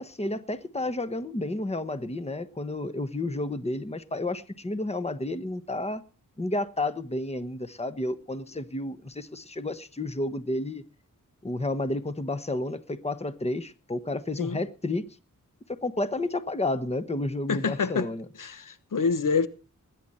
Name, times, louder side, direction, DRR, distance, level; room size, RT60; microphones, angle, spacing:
voice 1, 0.0-6.0 6.4-10.8 11.4-15.0 15.8-18.3, left 2 dB, 20° left, 1.2 m, -31 dB
voice 2, 17.5-18.1 18.4-19.5, left 5 dB, 75° left, 1.2 m, -27 dB
20.5 x 10.0 x 4.3 m
wide cardioid pair, 75°, 32 cm